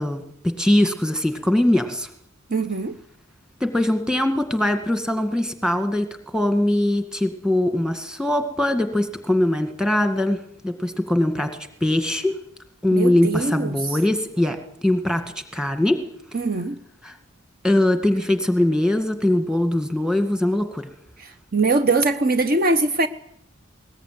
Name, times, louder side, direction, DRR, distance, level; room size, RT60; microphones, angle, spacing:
voice 1, 0.0-2.1 3.6-6.1 6.3-11.5 11.8-12.3 12.8-16.0 17.0-17.2 17.6-20.8, left 1 dB, 5° right, 2.0 m, -21 dB
voice 2, 2.5-3.0 12.9-14.0 16.3-16.8 21.2-23.1, right 3 dB, 45° right, 1.0 m, -22 dB
21.0 x 19.5 x 9.4 m
head